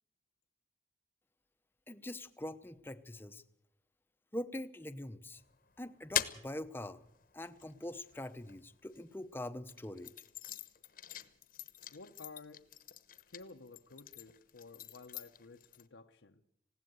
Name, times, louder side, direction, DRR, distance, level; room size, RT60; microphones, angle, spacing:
voice 1, 1.9-3.4 4.3-5.4 5.8-7.0 7.3-10.1, left 1 dB, 10° left, 0.7 m, -43 dB
sound 1, 5.4-9.0 9.6-15.9, left 10 dB, 45° left, 1.0 m, -44 dB
voice 2, 11.9-12.7 13.1-16.4, left 3 dB, 80° left, 0.9 m, -53 dB
20.0 x 16.5 x 8.0 m
head